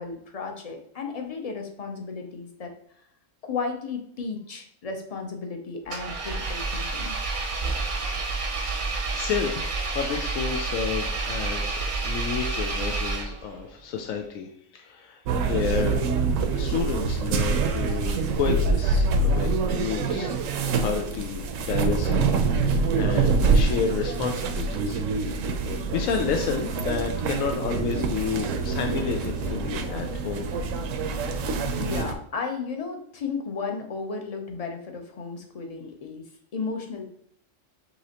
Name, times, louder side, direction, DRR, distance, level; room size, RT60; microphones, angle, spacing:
voice 1, 0.0-2.7 3.4-7.2 31.8-36.2 36.5-37.1, left 4 dB, 40° left, 3 dB, 0.6 m, -34 dB
Engine, 5.9-13.6, right 3 dB, 50° right, 0.7 m, -29 dB
voice 2, 9.1-9.6 9.9-11.8 12.0-16.0 16.5-19.5 19.7-20.3 20.8-25.0 25.4-30.5, left 6 dB, 90° left, 3 dB, 1.0 m, -30 dB
sound 1, 15.3-32.1, right 4 dB, 80° right, 0.9 m, -25 dB
5.6 x 3.1 x 2.8 m, 0.65 s
omnidirectional pair, 1.4 m